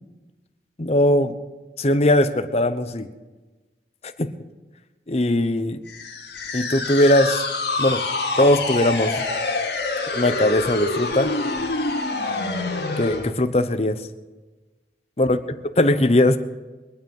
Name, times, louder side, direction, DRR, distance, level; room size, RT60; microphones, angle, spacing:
voice 1, 0.8-1.3 1.8-3.1 4.2-4.3 5.1-5.8 6.5-7.4 7.8-8.0 8.4-9.2 10.1-11.3 13.0-14.0 15.2-15.4 15.8-16.4, left 1 dB, 35° left, 10 dB, 0.8 m, -19 dB
sound 1, 5.9-13.3, left 3 dB, 75° left, 2.3 m, -26 dB
23.0 x 9.2 x 5.5 m, 1.2 s
head